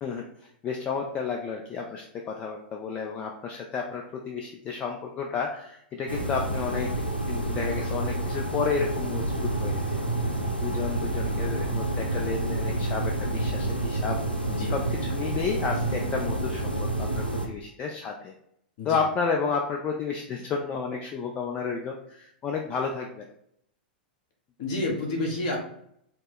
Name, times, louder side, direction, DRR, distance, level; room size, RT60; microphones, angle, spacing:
voice 1, 0.0-6.9 7.3-10.0 10.6-14.2 14.7-14.8 15.1-18.3 18.8-23.2, left 5 dB, 25° left, 1 dB, 0.4 m, -31 dB
sound 1, 6.1-17.5, right 1 dB, 85° left, 0.7 m, -29 dB
voice 2, 24.6-25.6, left 2 dB, 45° left, -1 dB, 1.3 m, -29 dB
4.3 x 2.1 x 4.6 m, 0.73 s
figure-of-eight pair, 100°, 5 cm